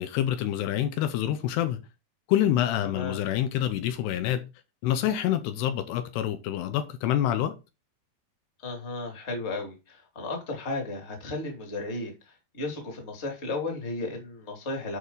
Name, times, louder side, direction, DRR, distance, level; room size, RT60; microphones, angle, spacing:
voice 1, 0.0-1.8 2.3-4.4 4.8-7.5, left 11 dB, 80° left, 2.7 m, -27 dB
voice 2, 8.6-12.1 12.5-15.0, left 2 dB, 20° left, 1.8 m, -34 dB
9.6 x 5.4 x 4.0 m
omnidirectional pair, 5.0 m